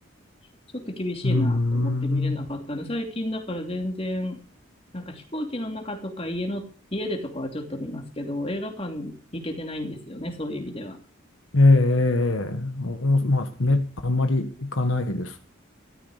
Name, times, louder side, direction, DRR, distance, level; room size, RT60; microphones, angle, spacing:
voice 1, 0.7-4.4 4.9-11.0, left 1 dB, 30° left, 2.9 m, -32 dB
voice 2, 1.2-2.4 11.5-15.4, left 2 dB, 75° left, 1.5 m, -22 dB
14.5 x 13.5 x 5.0 m
head